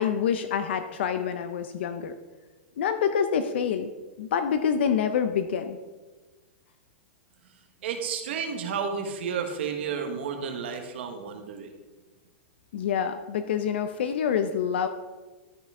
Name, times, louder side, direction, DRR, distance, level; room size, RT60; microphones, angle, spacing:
voice 1, 0.0-2.1 2.8-3.9 4.2-5.8 12.7-14.9, left 7 dB, 60° left, 9 dB, 0.6 m, -26 dB
voice 2, 7.8-11.7, right 6 dB, 65° right, 4 dB, 1.4 m, -31 dB
13.0 x 5.5 x 3.7 m, 1.3 s
supercardioid pair, 175°, 7 cm